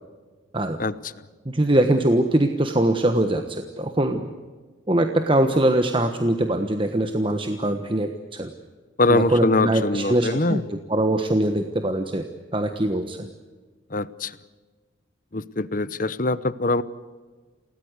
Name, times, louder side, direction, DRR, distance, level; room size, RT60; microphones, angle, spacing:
voice 1, 0.8-1.1 9.0-10.6 13.9-14.4 15.3-16.8, left 2 dB, 40° left, 16 dB, 0.9 m, -23 dB
voice 2, 1.4-4.3 4.9-8.5 9.1-12.2 12.5-13.3, right 1 dB, 25° right, 6 dB, 1.3 m, -22 dB
29.0 x 18.5 x 8.2 m, 1.4 s
head